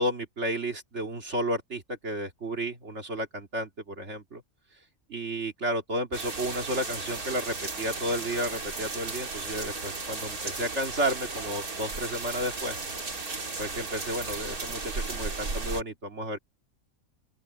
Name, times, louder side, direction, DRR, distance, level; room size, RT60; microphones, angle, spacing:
voice 1, 0.0-4.4 5.1-12.8 13.6-16.4, equal, 50° right, 2.7 m, -32 dB
sound 1, 6.1-15.8, right 3 dB, 85° right, 3.8 m, -35 dB
open air
omnidirectional pair, 1.5 m